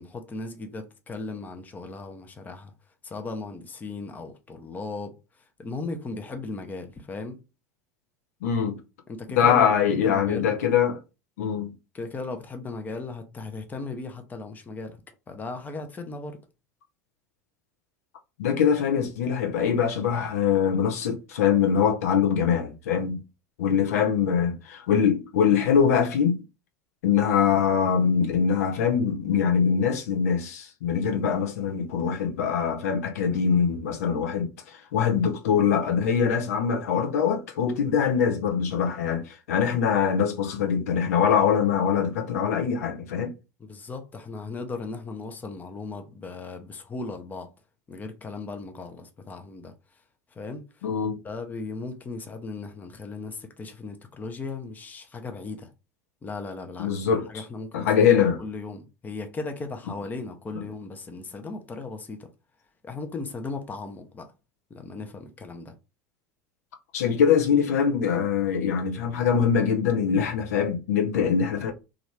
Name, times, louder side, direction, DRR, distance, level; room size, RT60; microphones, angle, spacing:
voice 1, 0.0-2.7 3.0-5.2 5.6-7.4 9.1-10.5 11.9-15.0 15.3-16.4 43.6-47.5 47.9-49.7 50.3-50.9 51.2-55.7 56.2-56.9 57.3-57.9 58.2-62.3 62.8-64.3 64.7-65.7, left 3 dB, 20° left, 0.6 m, -37 dB
voice 2, 8.4-8.8 9.4-11.0 11.4-11.7 18.4-23.2 23.6-26.4 27.0-43.3 50.8-51.2 56.8-57.4 57.7-58.4 60.6-60.7 66.9-71.7, left 7 dB, 65° left, 0.6 m, -23 dB
3.1 x 2.5 x 3.2 m
figure-of-eight pair, 75°, 9 cm